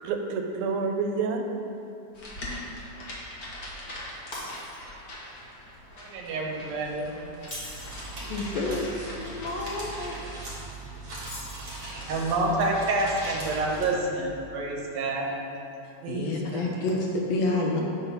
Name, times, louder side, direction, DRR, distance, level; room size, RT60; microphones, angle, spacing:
voice 1, 0.0-1.5 16.0-17.0, right 4 dB, 90° right, 4 dB, 2.0 m, -30 dB
sound 1, 2.1-10.0, left 1 dB, 60° left, 0.9 m, -42 dB
Shatter, 4.3-5.1 5.5-5.7 7.3-8.2 11.2-12.1, left 1 dB, 45° left, 0.5 m, -41 dB
voice 2, 6.0-7.1 11.8-15.4, right 2 dB, 70° right, -1 dB, 2.0 m, -28 dB
sound 2, 7.7-13.9, right 2 dB, 40° right, 1.5 m, -39 dB
voice 3, 8.3-9.0 9.2-10.2 16.1-17.8, left 2 dB, 75° left, -1 dB, 1.6 m, -28 dB
7.8 x 3.9 x 5.7 m, 2.7 s
omnidirectional pair, 3.4 m